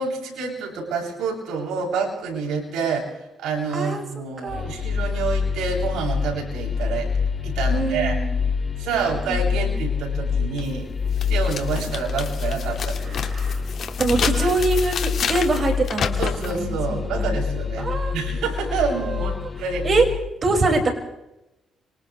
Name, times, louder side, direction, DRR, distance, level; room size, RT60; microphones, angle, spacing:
voice 1, 0.0-3.1 3.4-7.1 7.4-8.2 8.8-10.9 11.3-13.3 14.2-14.5 16.2-19.9, right 5 dB, 90° right, -1 dB, 7.7 m, -28 dB
voice 2, 3.7-4.0 4.4-4.7 7.7-8.3 8.9-9.8 13.1-13.6 14.0-16.2 16.5-17.4 17.8-18.1 19.8-20.1 20.4-20.9, right 3 dB, 40° right, 2 dB, 5.9 m, -24 dB
sound 1, 4.5-20.2, left 6 dB, 30° left, 2.9 m, -26 dB
sound 2, 10.6-10.7 11.2-16.6, left 7 dB, 60° left, 2.1 m, -30 dB
29.5 x 26.0 x 3.4 m, 0.93 s
cardioid pair, 90°, 0 cm